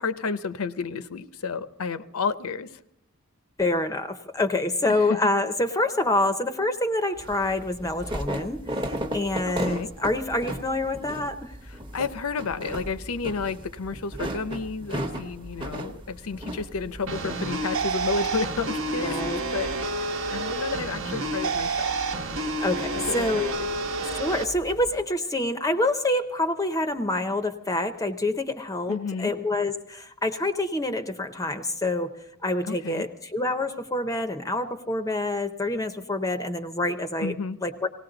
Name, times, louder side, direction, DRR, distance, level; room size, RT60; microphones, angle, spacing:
voice 1, 0.0-2.7 5.1-5.2 9.5-9.9 11.9-19.2 19.5-21.9 22.9-23.7 28.9-29.3 32.6-33.1 37.2-37.6, left 4 dB, 75° left, 13 dB, 0.7 m, -31 dB
voice 2, 3.6-11.5 19.0-19.4 22.3-23.5 24.0-32.1 32.4-37.3 37.6-37.9, left 2 dB, 15° left, 8 dB, 0.6 m, -27 dB
sound 1, 7.2-25.0, equal, 20° right, 1.0 m, -37 dB
sound 2, 17.1-24.4, right 3 dB, 60° right, 1.1 m, -29 dB
19.0 x 17.0 x 3.9 m, 0.76 s
head